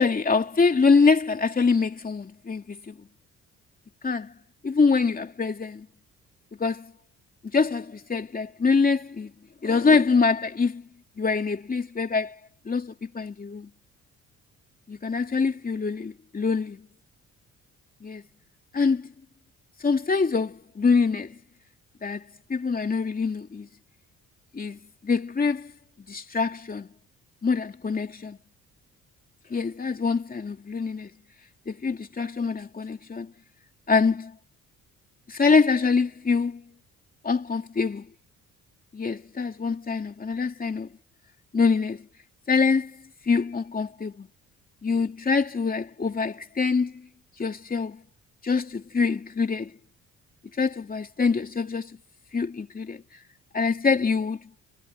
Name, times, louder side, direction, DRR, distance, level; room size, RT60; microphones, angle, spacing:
voice 1, 0.0-3.1 4.0-4.3 4.6-5.9 6.6-6.9 7.5-9.3 9.6-10.8 11.2-12.3 12.6-13.7 14.9-16.8 18.0-18.2 18.7-19.1 19.8-21.3 22.0-22.2 22.5-23.7 24.5-25.7 26.1-26.9 27.4-28.4 29.5-31.1 31.7-33.3 33.9-34.4 35.3-36.6 37.2-38.1 38.9-40.9 41.5-42.1 42.5-43.0 43.3-44.3 44.8-46.9 47.4-48.0 48.4-49.7 50.6-52.0 52.3-53.0 53.5-54.4, left 4 dB, 30° left, 2.8 m, -24 dB
cardioid pair, 90°, 30 cm